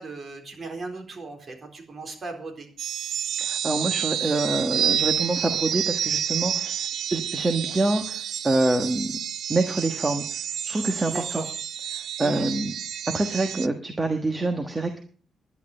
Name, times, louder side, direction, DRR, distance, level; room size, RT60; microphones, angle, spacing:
voice 1, 0.0-2.7 11.1-11.5 12.2-12.5, right 2 dB, 35° right, 3 dB, 4.1 m, -37 dB
sound 1, 2.8-13.7, right 9 dB, 65° right, 0.6 m, -29 dB
voice 2, 3.4-9.1 9.5-11.4 11.9-12.7 13.1-15.0, right 2 dB, 15° right, 6 dB, 1.4 m, -26 dB
11.5 x 11.0 x 6.6 m, 0.43 s
cardioid pair, 145°, 0 cm